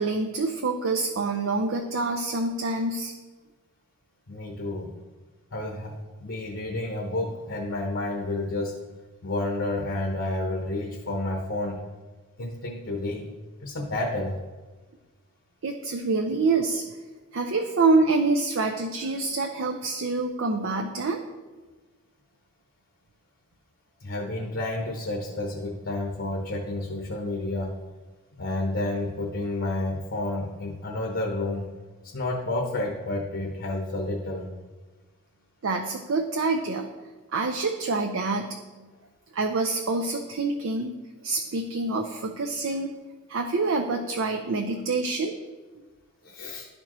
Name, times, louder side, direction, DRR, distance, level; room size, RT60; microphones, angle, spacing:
voice 1, 0.0-3.1 15.6-16.8 17.3-21.2 35.6-36.9 37.3-38.6 39.3-40.9 41.2-42.9 43.3-45.4, right 3 dB, 70° right, 3 dB, 0.5 m, -26 dB
voice 2, 4.3-4.9 5.5-8.8 9.2-11.8 12.4-13.2 13.6-14.4 24.0-27.7 28.4-31.7 32.1-34.5 46.2-46.7, left 2 dB, 65° left, 0 dB, 0.9 m, -30 dB
12.0 x 4.3 x 3.0 m, 1.3 s
head